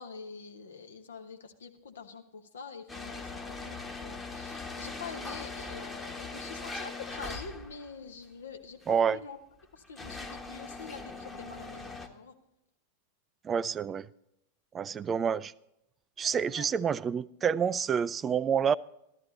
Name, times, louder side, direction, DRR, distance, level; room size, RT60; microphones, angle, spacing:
voice 1, 0.0-9.4 9.7-12.3 16.4-16.7, left 5 dB, 65° left, 1.3 m, -45 dB
sound 1, 2.9-7.9 8.8-8.9 9.6-12.1, left 3 dB, 10° left, 1.2 m, -40 dB
voice 2, 8.9-9.2 13.4-14.1 14.7-15.5 16.2-18.8, right 7 dB, 20° right, 0.4 m, -28 dB
13.5 x 12.5 x 4.1 m
figure-of-eight pair, 90°, 0 cm